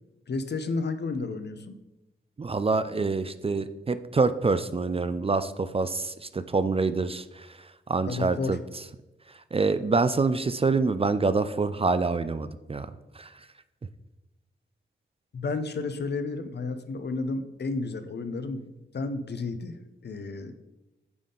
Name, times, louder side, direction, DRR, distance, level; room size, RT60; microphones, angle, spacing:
voice 1, 0.3-1.8 8.0-8.6 15.3-20.5, left 3 dB, 55° left, 9 dB, 0.6 m, -32 dB
voice 2, 2.4-8.8 9.3-13.5, right 4 dB, 30° right, 12 dB, 0.4 m, -26 dB
9.4 x 3.7 x 3.8 m, 1.0 s
cardioid pair, 45°, 21 cm